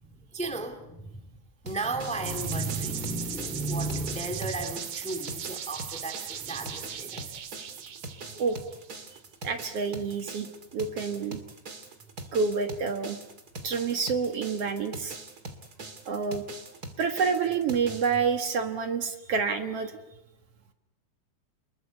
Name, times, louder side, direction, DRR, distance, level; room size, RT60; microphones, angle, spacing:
voice 1, 0.0-1.3 1.6-7.4, right 2 dB, 5° left, 1.8 m, -34 dB
sound 1, 1.7-18.2, right 2 dB, 35° right, 2.7 m, -43 dB
sound 2, 2.2-8.9, right 9 dB, 80° right, 3.3 m, -38 dB
voice 2, 9.4-10.5 10.7-11.4 12.3-13.2 13.6-15.2 16.1-16.4 17.0-19.9, right 5 dB, 55° right, 2.4 m, -28 dB
30.0 x 21.5 x 8.1 m
omnidirectional pair, 3.5 m